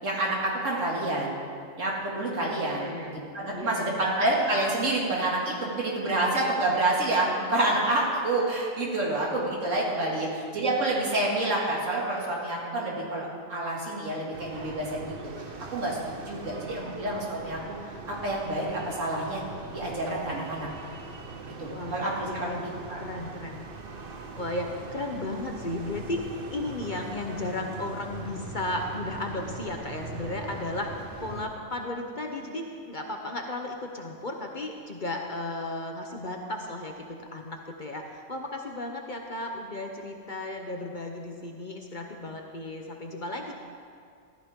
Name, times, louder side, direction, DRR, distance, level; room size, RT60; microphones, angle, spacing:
voice 1, 0.0-1.3 1.8-15.1 15.7-17.6 18.1-19.4 19.7-20.7 21.6-22.6 22.9-23.0, right 2 dB, 65° right, -4 dB, 2.9 m, -28 dB
voice 2, 2.4-3.2 3.5-4.1 8.8-9.1 10.1-10.3 16.4-17.0 21.7-22.0 22.3-22.6 23.0-23.7 24.3-36.9 37.2-43.5, left 2 dB, 40° left, 2 dB, 0.9 m, -35 dB
sound 1, 14.3-31.5, right 4 dB, 45° right, 1.0 m, -41 dB
14.5 x 13.5 x 3.7 m, 2.2 s
omnidirectional pair, 1.4 m